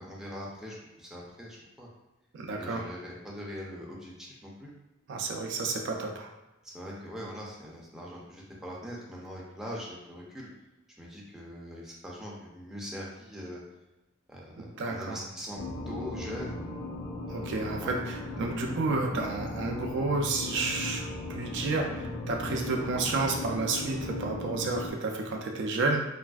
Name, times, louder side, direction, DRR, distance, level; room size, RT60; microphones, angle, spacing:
voice 1, 0.0-1.9 2.6-4.7 6.6-10.5 11.0-13.6 14.3-16.6 17.3-18.0 18.4-18.5 22.4-22.7, equal, 5° right, -4 dB, 0.5 m, -42 dB
voice 2, 2.3-2.8 5.1-6.3 14.6-15.2 17.3-21.0 21.3-26.1, right 3 dB, 60° right, 1 dB, 0.4 m, -31 dB
sound 1, 15.6-24.9, left 2 dB, 80° left, 0.6 m, -37 dB
3.3 x 2.4 x 2.3 m, 1.0 s
head